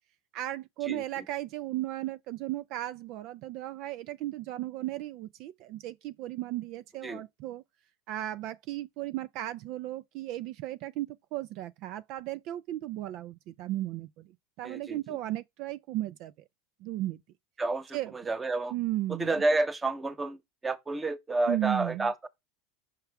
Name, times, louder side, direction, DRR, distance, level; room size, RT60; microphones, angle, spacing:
voice 1, 0.3-7.6 8.1-14.3 14.6-16.3 16.8-17.2 17.9-18.1 18.7-19.3 21.5-22.1, right 15 dB, 60° right, 0.4 m, -35 dB
voice 2, 14.6-15.0 17.6-18.7 19.2-20.4 20.6-22.3, right 2 dB, 15° right, 1.0 m, -30 dB
5.8 x 5.6 x 3.5 m
hypercardioid pair, 100°, 0 cm